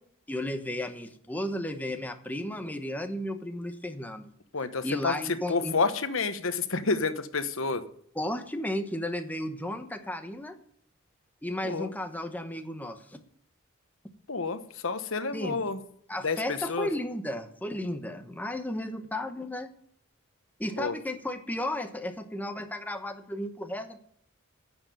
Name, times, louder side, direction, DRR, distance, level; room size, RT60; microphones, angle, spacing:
voice 1, 0.3-4.3 4.8-5.8 8.2-10.6 11.4-13.2 15.3-15.6 16.1-19.7 20.6-24.0, left 1 dB, 10° left, 7 dB, 1.0 m, -34 dB
voice 2, 4.5-5.2 5.5-7.8 11.6-11.9 14.3-15.8 16.2-16.9 20.8-20.9, left 4 dB, 65° left, 11 dB, 1.1 m, -29 dB
9.8 x 7.4 x 9.2 m, 0.66 s
head